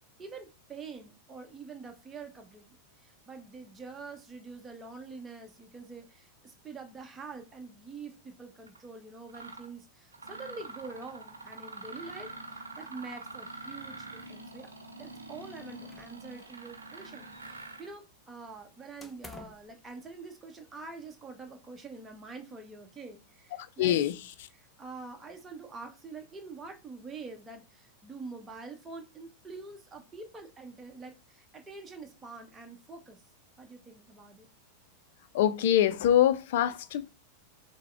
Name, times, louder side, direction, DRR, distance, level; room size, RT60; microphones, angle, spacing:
voice 1, 0.2-2.7 3.0-14.7 15.0-24.0 24.5-33.2 33.6-34.5, right 4 dB, 15° right, 1.0 m, -46 dB
Mechanisms, 8.7-8.8 9.3-9.7 10.1-17.9, right 3 dB, 75° right, 0.7 m, -45 dB
sound 1, 15.9-16.7 16.9-17.9 19.0-19.7, left 1 dB, 5° left, 0.6 m, -51 dB
voice 2, 23.8-24.2 35.3-37.1, left 11 dB, 55° left, 0.4 m, -24 dB
5.8 x 2.1 x 3.3 m
figure-of-eight pair, 90°, 0 cm